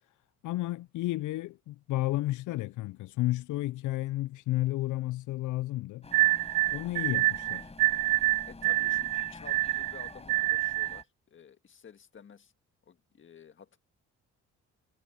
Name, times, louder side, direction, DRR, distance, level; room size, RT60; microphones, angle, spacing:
voice 1, 0.4-6.1 6.7-7.7, left 17 dB, 80° left, 0.5 m, -32 dB
sound 1, 6.0-11.0, left 3 dB, 20° left, 4.8 m, -48 dB
sound 2, 6.1-11.0, right 19 dB, 80° right, 0.5 m, -27 dB
voice 2, 8.5-12.5 12.9-13.8, left 7 dB, 40° left, 1.7 m, -52 dB
cardioid pair, 90°, 30 cm